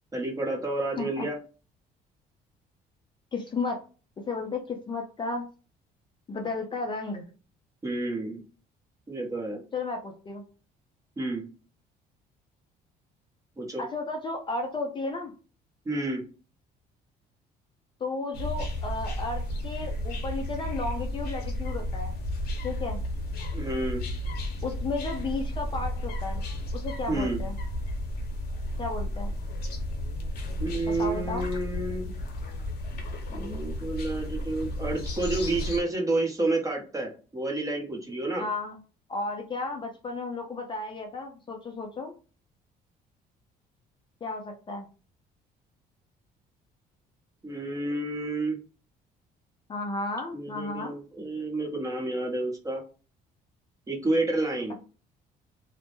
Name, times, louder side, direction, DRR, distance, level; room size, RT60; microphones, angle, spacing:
voice 1, 0.1-1.4 7.8-8.4 9.1-9.6 11.2-11.5 13.6-13.8 15.8-16.2 23.5-24.0 27.1-27.4 30.6-32.1 33.3-38.4 47.4-48.6 50.3-52.8 53.9-54.7, right 2 dB, 20° right, 0 dB, 0.8 m, -30 dB
voice 2, 3.3-3.8 4.2-5.5 6.3-7.3 9.7-10.4 13.8-15.3 18.0-22.2 22.6-23.0 24.6-26.4 26.7-27.6 28.8-29.3 30.9-31.5 38.4-38.8 39.1-42.1 44.2-44.9 49.7-51.0, left 3 dB, 30° left, 3 dB, 0.4 m, -33 dB
sound 1, 18.3-35.8, left 1 dB, 70° left, 0.8 m, -33 dB
2.1 x 2.0 x 2.9 m, 0.35 s
cardioid pair, 110°, 17 cm